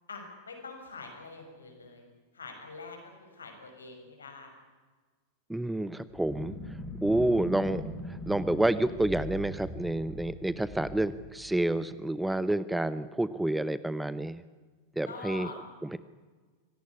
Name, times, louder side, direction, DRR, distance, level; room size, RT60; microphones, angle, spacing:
voice 1, 0.1-2.1 2.3-4.5 6.3-6.4 15.1-15.6, left 4 dB, 75° left, 4 dB, 6.4 m, -45 dB
voice 2, 5.5-6.5 7.0-7.8 8.1-14.4 15.0-15.5 15.9-16.0, right 1 dB, 5° right, 16 dB, 0.9 m, -29 dB
sound 1, 6.1-12.1, left 1 dB, 20° left, 6.5 m, -41 dB
24.5 x 18.0 x 9.9 m, 1.4 s
figure-of-eight pair, 90°, 0 cm